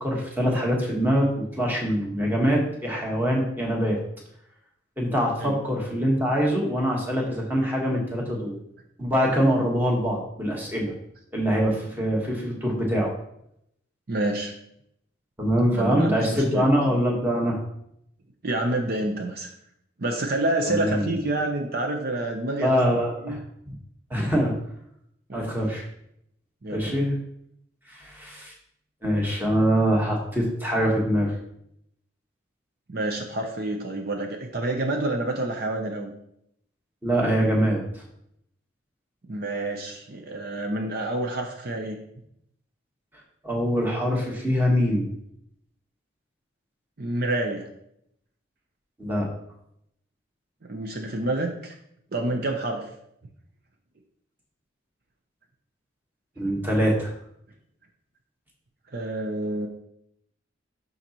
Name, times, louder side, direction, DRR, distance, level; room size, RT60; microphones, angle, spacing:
voice 1, 0.0-4.0 5.0-8.6 9.0-10.9 11.3-13.1 15.4-17.6 20.6-21.2 22.6-23.4 23.7-23.8 24.1-24.5 25.3-25.9 26.7-27.2 27.9-28.5 29.0-31.3 37.0-38.0 43.4-45.1 49.0-49.3 56.4-57.1, equal, 10° right, -2 dB, 1.3 m, -24 dB
voice 2, 14.1-14.5 15.7-16.7 18.4-19.5 20.0-22.8 23.2-23.4 25.3-25.5 26.6-27.1 32.9-36.1 39.3-42.0 47.0-47.7 50.6-51.7 52.1-52.9 58.9-59.7, right 2 dB, 50° right, 3 dB, 0.7 m, -28 dB
11.5 x 3.9 x 3.0 m, 0.74 s
head